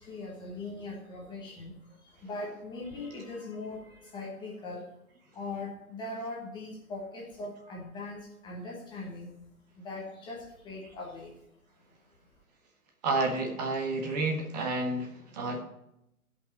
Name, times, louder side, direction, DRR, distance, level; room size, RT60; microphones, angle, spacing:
voice 1, 0.0-4.9 5.3-9.3 9.8-11.3, left 2 dB, 10° left, -3 dB, 1.3 m, -40 dB
voice 2, 13.0-15.6, right 2 dB, 30° right, 2 dB, 1.4 m, -30 dB
13.5 x 5.6 x 5.3 m, 0.82 s
figure-of-eight pair, 125°, 43 cm